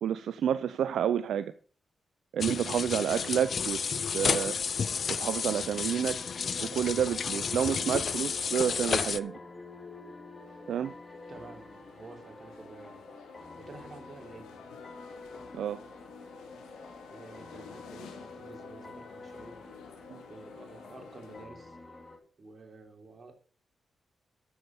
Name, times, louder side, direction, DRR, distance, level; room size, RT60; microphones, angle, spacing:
voice 1, 0.0-1.5 2.3-3.8 4.1-4.6 5.1-6.2 6.6-9.4 10.7-10.9 15.5-15.8 20.1-20.2, right 9 dB, 80° right, 0.4 m, -29 dB
sound 1, 2.4-9.2, left 6 dB, 60° left, 0.5 m, -31 dB
sound 2, 3.1-22.2, left 2 dB, 25° left, 3.5 m, -48 dB
sound 3, 10.4-21.5, left 8 dB, 90° left, 1.8 m, -52 dB
voice 2, 11.3-14.6 17.1-19.6 20.3-21.8 22.4-23.4, right 3 dB, 50° right, 3.5 m, -50 dB
12.0 x 7.1 x 5.5 m
supercardioid pair, 45°, 0 cm